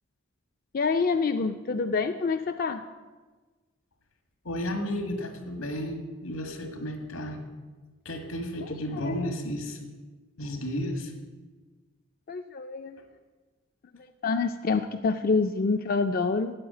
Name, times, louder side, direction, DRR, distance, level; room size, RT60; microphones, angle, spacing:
voice 1, 0.7-2.8 8.6-9.3 12.3-12.9 14.2-16.5, left 4 dB, 40° left, 7 dB, 0.4 m, -27 dB
voice 2, 4.5-7.4 8.1-9.8 10.4-11.1, equal, 90° left, 5 dB, 1.9 m, -33 dB
8.7 x 8.6 x 8.2 m, 1.3 s
head